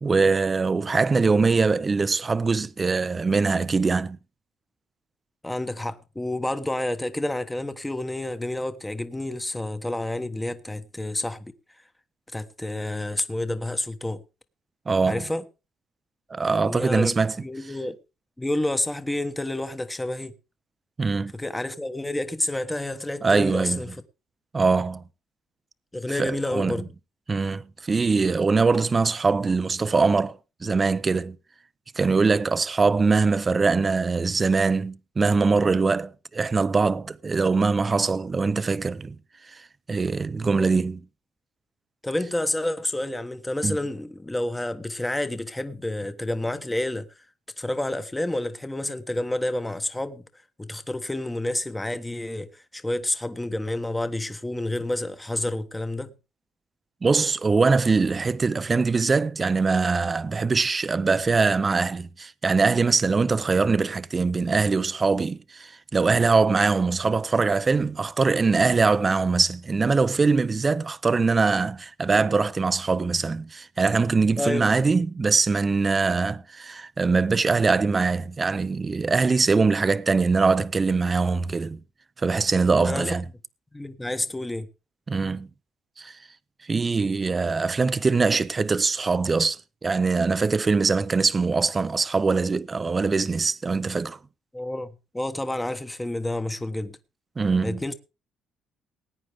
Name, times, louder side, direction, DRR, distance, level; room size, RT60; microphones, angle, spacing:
voice 1, 0.0-4.2 14.9-15.2 16.3-17.4 21.0-21.3 23.2-23.8 24.5-25.0 26.2-26.8 27.3-31.4 32.0-39.2 39.5-39.6 39.9-41.0 43.6-43.8 57.0-81.8 82.2-83.2 85.1-85.5 86.0-86.2 86.7-94.2 97.4-97.8, right 4 dB, 25° right, 0.6 m, -22 dB
voice 2, 5.4-11.5 12.3-14.2 15.1-15.4 16.6-17.2 17.4-18.0 18.4-20.3 21.3-24.0 25.9-26.8 40.4-40.7 42.0-47.2 47.6-50.3 50.6-56.1 74.4-75.0 82.8-83.1 83.7-84.7 94.5-94.9 95.1-97.0 97.6-97.9, left 1 dB, 10° left, 1.1 m, -29 dB
19.5 x 9.3 x 3.5 m
cardioid pair, 105°, 0 cm